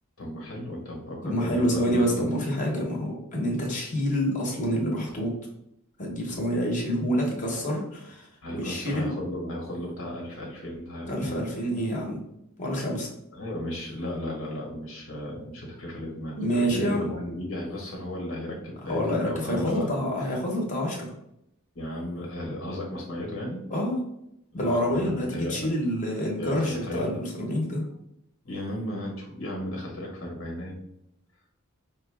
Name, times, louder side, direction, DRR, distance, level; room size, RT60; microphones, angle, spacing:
voice 1, 0.2-2.2 8.4-11.4 13.3-20.4 21.7-23.6 24.5-25.7 26.4-27.2 28.4-30.8, left 1 dB, 90° left, -1 dB, 1.4 m, -35 dB
voice 2, 1.2-5.3 6.0-8.3 8.5-9.1 11.1-12.2 12.6-13.1 16.3-17.1 18.9-21.1 23.7-24.0 24.5-27.8, equal, 40° left, -2 dB, 1.2 m, -27 dB
5.0 x 2.3 x 3.4 m, 0.80 s
head